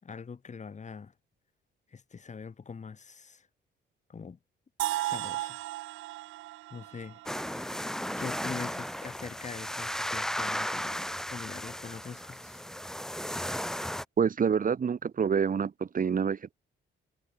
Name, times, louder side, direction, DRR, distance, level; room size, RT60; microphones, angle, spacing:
voice 1, 0.0-1.1 1.9-3.5 4.1-4.4 5.0-5.6 6.7-7.8 8.2-12.6, left 5 dB, 35° left, 3.2 m, -43 dB
sound 1, 4.8-8.7, right 17 dB, 90° right, 1.2 m, -36 dB
sound 2, 7.3-14.0, equal, ahead, 3.3 m, -35 dB
voice 2, 14.2-16.5, right 6 dB, 45° right, 2.4 m, -27 dB
cardioid pair, 90°, 20 cm